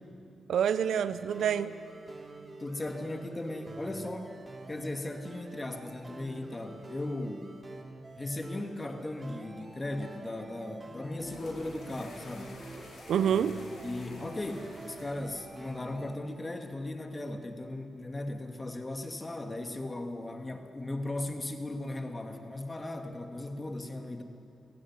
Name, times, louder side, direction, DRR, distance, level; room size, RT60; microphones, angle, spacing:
voice 1, 0.5-1.8 13.1-13.5, right 8 dB, 75° right, 14 dB, 0.8 m, -27 dB
sound 1, 1.1-16.1, right 2 dB, 35° right, 3.7 m, -48 dB
voice 2, 2.6-4.3 4.7-7.5 8.2-12.6 13.8-24.2, left 1 dB, 30° left, 5 dB, 2.7 m, -37 dB
sound 2, 11.1-16.2, left 2 dB, 75° left, 4.4 m, -50 dB
22.5 x 16.0 x 9.8 m, 2.7 s
supercardioid pair, 45°, 0 cm